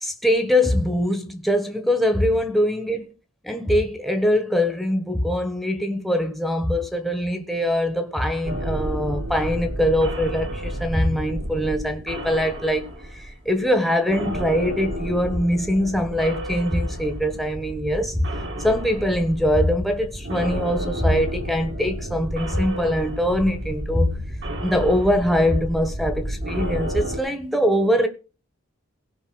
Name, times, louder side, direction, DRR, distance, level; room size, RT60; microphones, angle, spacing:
voice 1, 0.0-3.1 3.4-18.3 18.6-24.1 24.6-28.1, equal, ahead, 1.2 m, -22 dB
sound 1, 8.4-13.8 14.1-27.2, right 1 dB, 55° right, 2.0 m, -31 dB
17.0 x 5.7 x 6.2 m
head